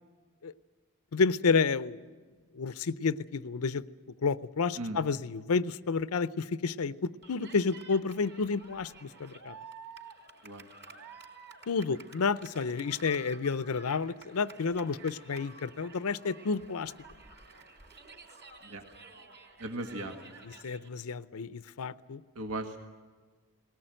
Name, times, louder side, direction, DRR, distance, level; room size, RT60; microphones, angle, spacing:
voice 1, 1.1-2.0 2.5-3.8 4.2-9.6 11.7-16.9 20.4-22.2, left 4 dB, 75° left, 16 dB, 0.6 m, -30 dB
Cheering, 7.2-20.9, right 4 dB, 50° right, 3.9 m, -51 dB
voice 2, 19.6-20.3 22.3-22.8, right 2 dB, 85° right, 5 dB, 1.7 m, -37 dB
19.5 x 18.5 x 9.0 m, 1.5 s
head